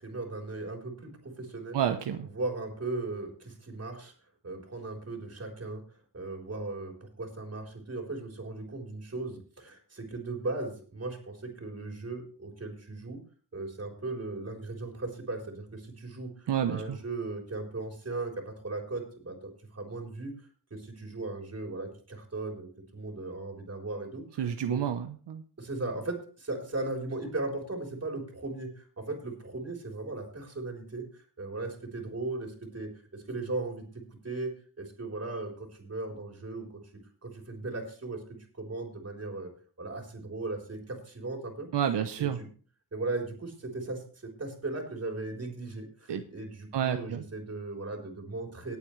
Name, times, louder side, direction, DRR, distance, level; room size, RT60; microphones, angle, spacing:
voice 1, 0.0-1.8 2.3-4.1 4.4-5.8 6.1-13.2 13.5-20.3 20.7-24.8 25.6-31.0 31.4-33.9 34.2-36.8 37.2-38.2 38.5-39.5 39.8-41.7 42.2-42.5 42.9-48.8, right 2 dB, 35° right, 2 dB, 3.9 m, -37 dB
voice 2, 1.7-2.3 16.5-17.0 24.4-25.4 41.7-42.4 46.1-46.2 46.7-47.2, right 9 dB, 75° right, 7 dB, 0.9 m, -29 dB
19.0 x 8.4 x 3.2 m, 0.41 s
cardioid pair, 90°, 41 cm